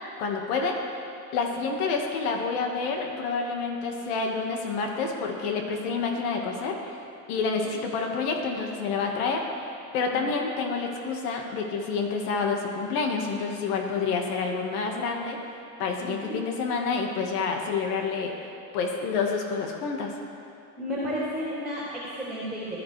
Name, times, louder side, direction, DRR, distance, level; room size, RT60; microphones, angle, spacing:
voice 1, 0.2-0.8 1.3-7.0 7.3-15.4 15.8-18.3 18.7-20.2, left 4 dB, 85° left, 2 dB, 1.8 m, -28 dB
voice 2, 16.0-16.3 20.8-22.8, equal, ahead, -9 dB, 3.1 m, -32 dB
19.0 x 13.0 x 3.3 m, 2.5 s
cardioid pair, 155°, 44 cm